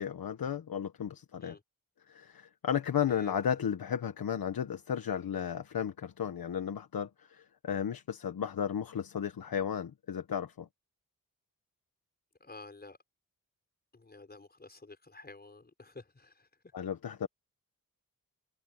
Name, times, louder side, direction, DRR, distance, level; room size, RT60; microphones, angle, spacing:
voice 1, 0.0-1.6 2.1-10.7 16.7-17.3, left 8 dB, 85° left, 1.2 m, -34 dB
voice 2, 12.4-13.0 13.9-16.5, left 3 dB, 30° left, 5.5 m, -50 dB
wide cardioid pair, 170°, 35 cm